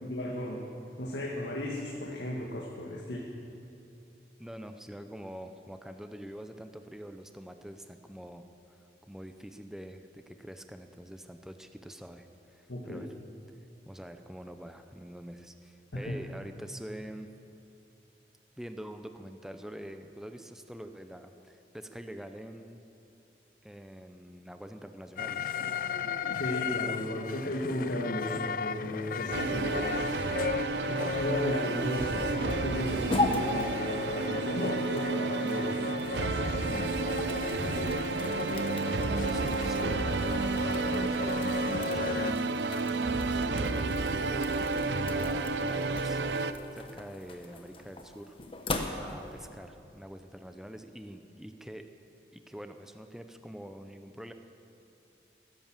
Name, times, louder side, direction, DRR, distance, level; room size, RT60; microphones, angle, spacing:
voice 1, 0.0-0.6 1.0-3.2 12.7-13.0 15.9-16.2 26.4-30.3 30.9-37.3, left 1 dB, 75° left, -2 dB, 1.7 m, -35 dB
voice 2, 4.4-8.5 9.1-13.1 13.9-17.3 18.6-22.8 23.6-25.5 38.4-40.0 40.4-42.3 43.2-48.4 49.0-51.9 52.3-54.3, equal, 5° right, 7 dB, 0.6 m, -45 dB
sound 1, 25.2-42.3, left 6 dB, 50° left, 0.3 m, -36 dB
sound 2, 29.3-46.5, right 3 dB, 85° right, 0.6 m, -31 dB
sound 3, 31.5-49.5, left 2 dB, 30° left, 1.1 m, -39 dB
17.5 x 11.0 x 7.4 m, 2.8 s
head